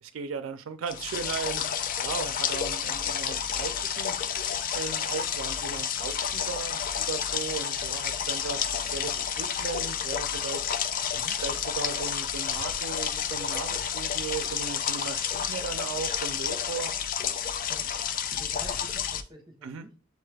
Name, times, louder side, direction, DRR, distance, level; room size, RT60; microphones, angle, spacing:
voice 1, 0.0-1.6 2.0-4.2 4.7-10.7 11.4-16.9 19.6-19.9, right 5 dB, 80° right, 0.4 m, -36 dB
sound 1, 0.9-19.2, left 8 dB, 45° left, 0.3 m, -30 dB
voice 2, 18.3-20.0, right 1 dB, 25° right, 0.7 m, -48 dB
6.6 x 2.3 x 3.2 m
head